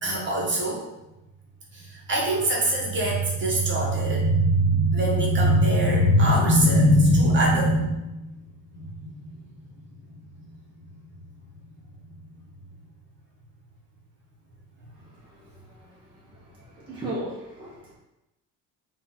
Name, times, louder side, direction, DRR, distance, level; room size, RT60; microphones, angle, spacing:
voice 1, 0.0-0.9 1.7-8.4 8.8-9.5 10.1-10.5, equal, 35° right, -3 dB, 1.0 m, -22 dB
voice 2, 16.8-18.0, right 1 dB, 15° right, -7 dB, 0.8 m, -34 dB
3.7 x 2.5 x 4.2 m, 0.97 s
cardioid pair, 150°, 35 cm